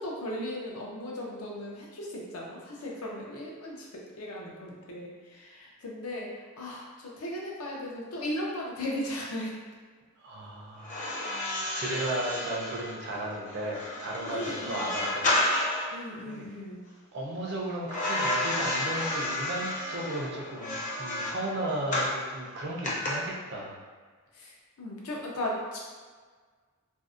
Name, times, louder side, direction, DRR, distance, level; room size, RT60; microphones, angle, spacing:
voice 1, 0.0-6.3 6.6-9.5 14.3-15.0 15.9-16.8 24.3-25.8, left 1 dB, 85° left, -3 dB, 0.5 m, -37 dB
voice 2, 10.2-11.0 11.3-15.4 15.8-15.9 16.2-16.4 17.1-23.8, right 1 dB, 50° right, -3 dB, 0.5 m, -35 dB
sound 1, 10.8-16.0 17.9-22.2 22.8-23.1, left 1 dB, 35° left, 0.5 m, -31 dB
2.6 x 2.0 x 2.4 m, 1.5 s
head